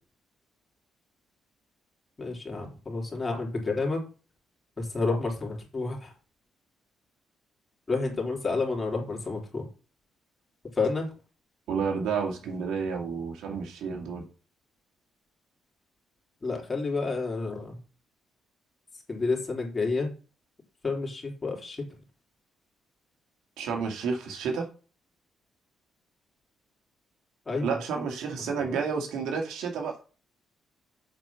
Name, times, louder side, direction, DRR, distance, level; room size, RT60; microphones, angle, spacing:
voice 1, 2.2-4.0 4.8-6.1 7.9-9.6 10.7-11.1 16.4-17.8 19.1-20.1 20.8-21.8 27.5-27.7 28.6-28.7, left 3 dB, 25° left, 0 dB, 3.4 m, -30 dB
voice 2, 11.7-14.2 23.6-24.7 27.6-29.9, right 5 dB, 85° right, 2 dB, 2.2 m, -30 dB
7.7 x 4.8 x 5.8 m, 0.36 s
cardioid pair, 90°, 0 cm